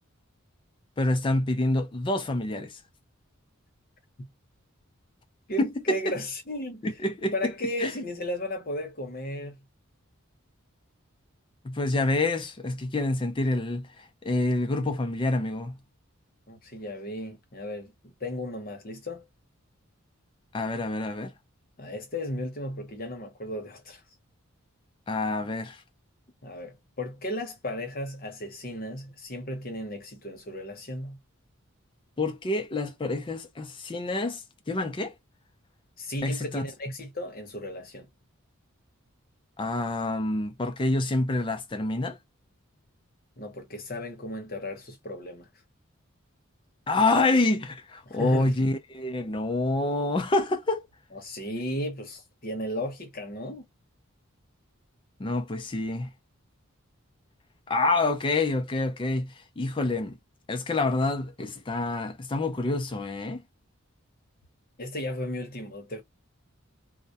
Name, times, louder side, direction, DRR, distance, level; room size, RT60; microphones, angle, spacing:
voice 1, 1.0-2.7 5.6-6.0 6.8-7.5 7.8-7.9 11.6-13.9 14.2-15.8 20.5-21.3 25.1-25.8 32.2-34.4 34.7-35.1 36.2-36.6 39.6-42.2 46.9-50.8 55.2-56.1 57.7-60.2 60.5-63.4, left 2 dB, 25° left, 0.4 m, -27 dB
voice 2, 5.5-6.9 7.3-9.6 16.5-19.2 21.8-24.0 26.4-31.2 36.0-38.1 43.4-45.5 48.0-48.6 51.1-53.7 64.8-66.0, left 1 dB, 40° left, 0.8 m, -35 dB
2.2 x 2.1 x 2.7 m
head